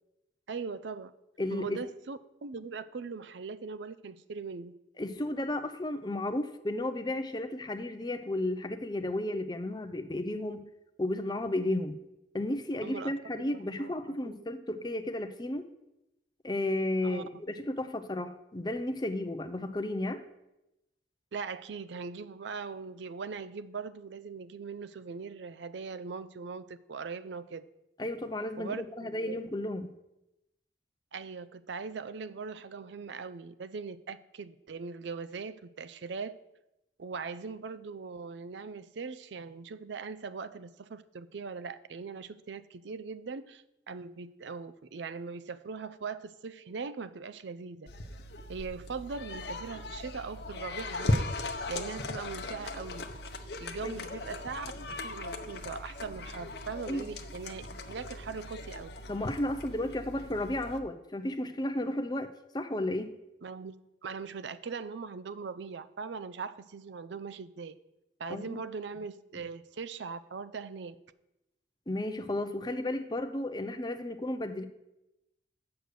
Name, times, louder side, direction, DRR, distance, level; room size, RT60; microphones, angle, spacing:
voice 1, 0.5-1.1 1.5-4.7 12.8-13.1 13.4-13.9 14.2-14.4 17.0-17.2 21.3-27.7 28.6-29.4 31.1-36.4 37.0-47.9 48.5-51.3 51.7-53.1 53.6-54.7 55.0-58.9 63.4-63.7 64.0-67.8 68.2-71.0, right 5 dB, 75° right, 13 dB, 0.5 m, -40 dB
voice 2, 1.4-1.8 5.0-10.7 11.0-12.0 12.3-15.7 16.4-20.2 28.0-29.9 53.8-54.0 56.9-57.1 59.1-63.1 68.3-68.6 71.9-74.7, left 1 dB, 25° left, 8 dB, 0.6 m, -33 dB
sound 1, 47.9-60.8, left 2 dB, 60° left, 0.8 m, -38 dB
7.8 x 6.4 x 6.8 m, 0.91 s
head